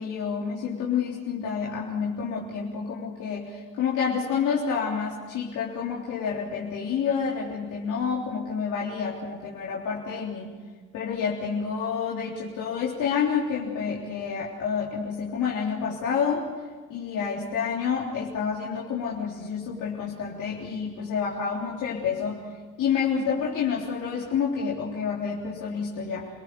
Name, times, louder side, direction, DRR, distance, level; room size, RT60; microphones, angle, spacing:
voice 1, 0.0-10.5 10.9-16.5 16.9-22.4 22.8-26.3, left 6 dB, 85° left, -5 dB, 3.7 m, -29 dB
29.0 x 18.5 x 7.0 m, 1.5 s
cardioid pair, 90°, 30 cm